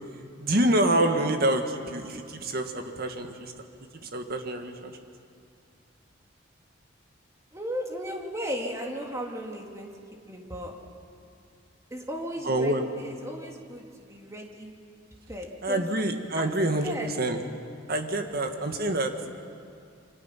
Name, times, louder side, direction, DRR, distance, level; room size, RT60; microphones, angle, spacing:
voice 1, 0.4-3.5 4.0-5.0 12.4-12.8 15.6-17.4 17.9-19.1, right 1 dB, 50° right, 5 dB, 1.8 m, -27 dB
voice 2, 7.5-9.9 10.2-10.7 11.9-14.7 15.3-15.9 16.3-16.5 16.8-17.1, equal, 15° right, 0 dB, 2.7 m, -36 dB
28.5 x 25.0 x 5.9 m, 2.3 s
head